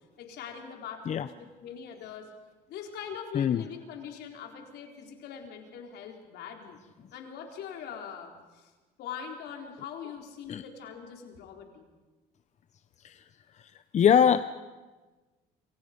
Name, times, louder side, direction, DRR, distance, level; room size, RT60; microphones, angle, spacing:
voice 1, 0.2-2.3 2.7-6.8 7.1-8.7 9.0-11.9, left 7 dB, 75° left, 2 dB, 4.3 m, -42 dB
voice 2, 13.6-14.4, left 8 dB, 45° left, 12 dB, 0.8 m, -23 dB
27.5 x 25.5 x 5.3 m, 1.2 s
cardioid pair, 110°, 17 cm